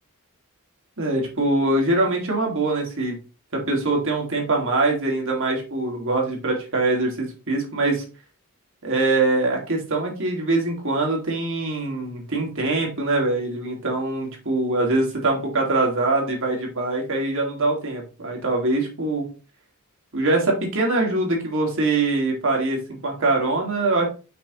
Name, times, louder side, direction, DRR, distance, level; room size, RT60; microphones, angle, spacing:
voice 1, 1.0-3.2 3.5-8.1 8.8-19.3 20.1-24.1, right 2 dB, 60° right, 0 dB, 2.1 m, -23 dB
6.0 x 5.5 x 3.0 m, 0.33 s
head